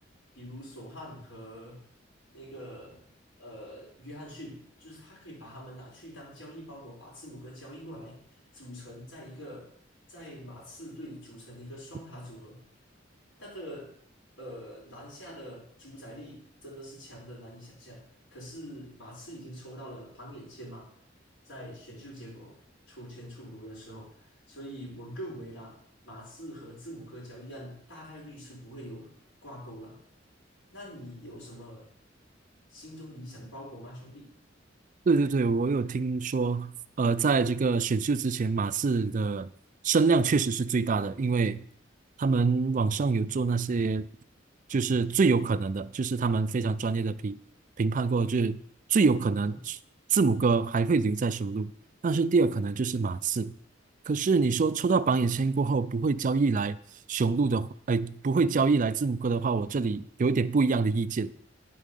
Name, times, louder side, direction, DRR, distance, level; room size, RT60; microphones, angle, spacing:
voice 1, 0.3-1.8 2.3-3.0 3.4-9.7 10.1-12.6 13.4-13.9 14.4-18.0 18.3-20.9 21.4-22.6 22.9-25.8 26.0-29.1 29.4-30.0 30.7-31.9 32.7-34.3 49.4-49.6, equal, 75° left, 4.5 m, -44 dB
voice 2, 35.1-39.5 39.8-41.7 42.2-44.1 44.7-47.4 47.8-48.6 48.9-49.8 50.1-51.7 52.0-53.5 54.1-56.8 57.1-61.3, right 4 dB, 40° right, 0.4 m, -25 dB
9.1 x 5.5 x 6.6 m
head